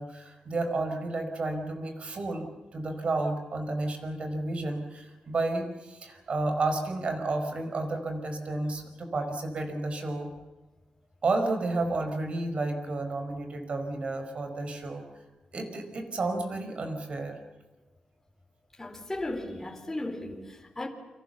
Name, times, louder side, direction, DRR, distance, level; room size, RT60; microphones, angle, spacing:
voice 1, 0.0-10.3 11.2-15.0 15.5-17.4, right 2 dB, 50° right, 5.4 m, -31 dB
voice 2, 18.8-20.9, left 1 dB, 15° left, 3.8 m, -36 dB
29.5 x 26.0 x 7.1 m
wide cardioid pair, 110°, 3 cm